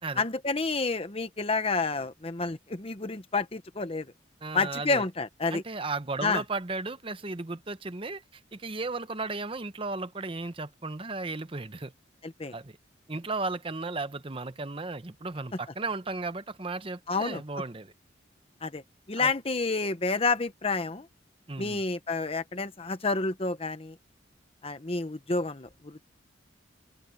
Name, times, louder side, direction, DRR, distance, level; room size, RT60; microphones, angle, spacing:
voice 1, 0.2-4.1 4.5-5.6 6.2-6.4 12.2-12.5 17.1-17.4 18.6-18.8 19.1-21.1 21.6-24.0 24.6-26.1, left 3 dB, 30° left, 1.0 m, -29 dB
voice 2, 4.4-5.0 5.5-8.2 8.5-11.9 12.5-12.8 13.1-17.9 19.2-19.3 21.5-21.8, right 3 dB, 30° right, 0.9 m, -35 dB
head